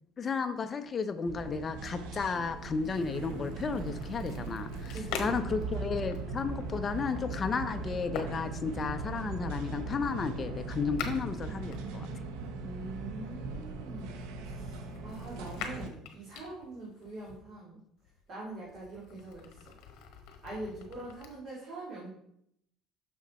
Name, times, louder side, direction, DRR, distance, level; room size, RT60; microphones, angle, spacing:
voice 1, 0.2-12.1, left 5 dB, 25° left, 8 dB, 0.5 m, -33 dB
sound 1, 1.3-15.9, right 3 dB, 85° right, 0.8 m, -39 dB
sound 2, 2.5-12.5 13.2-17.4 18.0-21.3, left 6 dB, 65° left, 1.3 m, -46 dB
voice 2, 4.9-5.6 12.6-17.8 18.3-19.7 20.4-22.1, right 2 dB, 40° right, -6 dB, 2.3 m, -44 dB
6.4 x 6.2 x 4.1 m, 0.73 s
cardioid pair, 165°, 0 cm